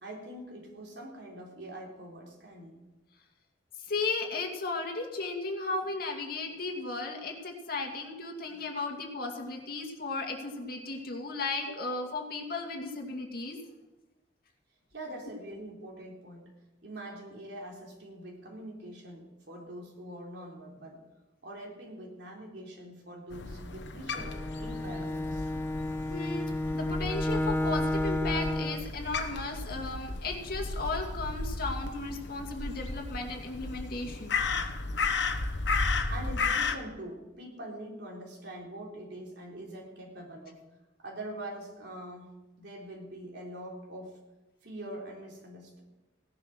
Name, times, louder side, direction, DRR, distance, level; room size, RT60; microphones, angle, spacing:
voice 1, 0.0-2.8 14.9-16.5 16.8-21.0 21.4-25.5 36.1-40.6 41.0-44.2 44.6-45.8, right 1 dB, 65° right, -1 dB, 3.8 m, -44 dB
voice 2, 3.8-13.6 26.1-26.4 26.7-34.3, left 3 dB, 55° left, 2 dB, 2.3 m, -35 dB
Crow, 23.3-36.8, left 3 dB, 75° left, 1.1 m, -34 dB
Bowed string instrument, 24.2-28.9, left 1 dB, 15° left, 0.4 m, -31 dB
17.0 x 11.0 x 6.1 m, 1.1 s
head